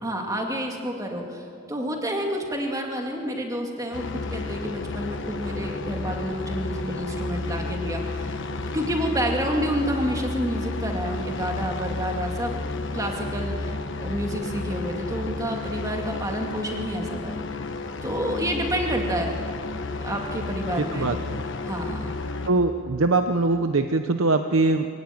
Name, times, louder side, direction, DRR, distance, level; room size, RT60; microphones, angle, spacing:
voice 1, 0.0-4.0 4.3-8.3 8.7-12.6 12.9-13.7 14.0-17.3 18.0-19.3 20.0-21.1 21.6-22.2, equal, 15° right, 2 dB, 2.3 m, -29 dB
sound 1, 3.9-22.5, left 2 dB, 60° left, 1.3 m, -31 dB
voice 2, 20.8-21.4 22.4-24.9, right 3 dB, 70° right, 8 dB, 0.8 m, -22 dB
23.5 x 17.0 x 9.2 m, 2.7 s
head